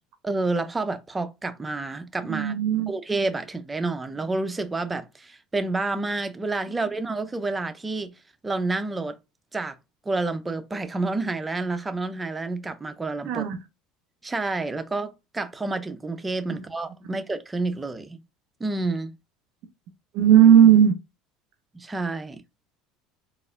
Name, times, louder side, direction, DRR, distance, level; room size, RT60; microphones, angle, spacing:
voice 1, 0.2-2.5 2.9-8.1 8.4-9.2 9.5-9.8 10.1-13.5 14.2-18.2 18.6-19.1 21.7-22.4, right 3 dB, 15° right, 0.5 m, -29 dB
voice 2, 2.3-2.9 13.2-13.6 16.5-16.6 20.1-20.9, right 9 dB, 70° right, 0.5 m, -16 dB
4.0 x 2.5 x 2.5 m
supercardioid pair, 95°, 0 cm